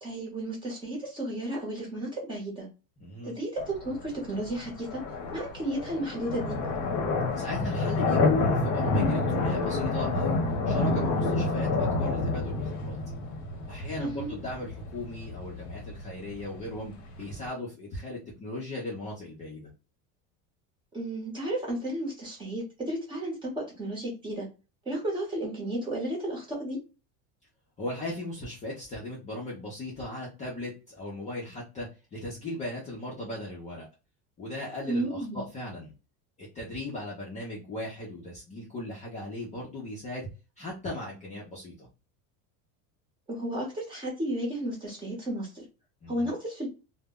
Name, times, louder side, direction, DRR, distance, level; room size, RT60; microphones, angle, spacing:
voice 1, 0.0-2.7 3.2-5.0 5.3-6.6 14.0-14.4 20.9-24.5 24.9-26.8 34.9-35.5 43.3-45.6 46.1-46.7, right 1 dB, 15° right, -2 dB, 0.8 m, -33 dB
voice 2, 3.0-3.4 7.4-10.4 10.7-13.0 13.7-19.7 27.8-33.9 34.4-35.9 36.4-40.3 40.6-41.9 46.0-46.3, left 1 dB, 20° left, -5 dB, 0.5 m, -37 dB
sound 1, 3.6-17.5, left 3 dB, 50° left, 0.7 m, -29 dB
2.1 x 2.0 x 3.4 m, 0.31 s
cardioid pair, 175°, 38 cm